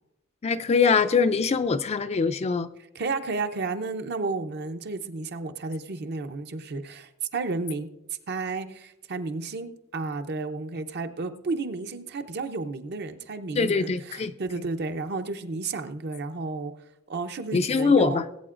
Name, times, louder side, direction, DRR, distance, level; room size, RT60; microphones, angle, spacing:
voice 1, 0.4-2.7 13.6-14.3 17.5-18.2, left 5 dB, 30° left, 10 dB, 0.3 m, -23 dB
voice 2, 2.9-7.9 8.3-16.7 17.1-18.3, right 3 dB, 55° right, 8 dB, 0.7 m, -32 dB
19.0 x 8.4 x 2.5 m, 0.87 s
head